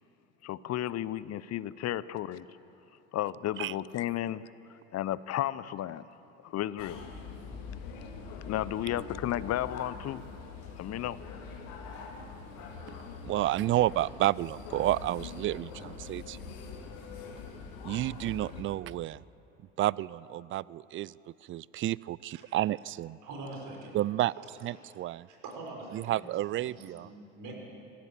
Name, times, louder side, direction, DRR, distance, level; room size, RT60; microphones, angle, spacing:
voice 1, 0.4-2.5 3.1-4.4 4.9-6.1 6.4-7.0 8.5-10.2 10.8-11.2, left 12 dB, 40° left, 18 dB, 0.8 m, -33 dB
sound 1, 6.8-18.6, left 5 dB, 60° left, 3.5 m, -44 dB
voice 2, 13.2-16.4 17.8-19.2 19.8-21.2 21.5-23.2 23.9-24.3 24.6-25.3 25.9-27.1, right 14 dB, 35° right, 23 dB, 0.4 m, -30 dB
voice 3, 23.2-24.0 24.4-24.5 25.3-26.2 26.5-27.6, right 2 dB, 55° right, 0 dB, 6.1 m, -44 dB
25.5 x 16.0 x 7.4 m, 2.9 s
hypercardioid pair, 65°, 39 cm